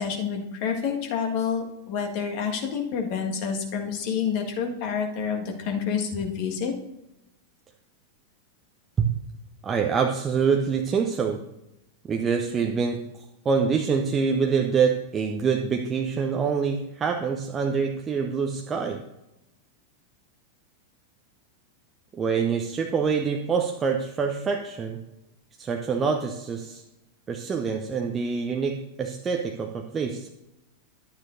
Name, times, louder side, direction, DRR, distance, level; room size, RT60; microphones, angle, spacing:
voice 1, 0.0-6.7, left 6 dB, 45° left, 2 dB, 1.7 m, -28 dB
voice 2, 9.6-11.4 12.1-13.0 13.4-19.0 22.1-25.0 25.6-26.8 27.3-30.3, right 6 dB, 20° right, 2 dB, 0.7 m, -25 dB
11.5 x 9.3 x 2.7 m, 0.90 s
figure-of-eight pair, 90°, 0 cm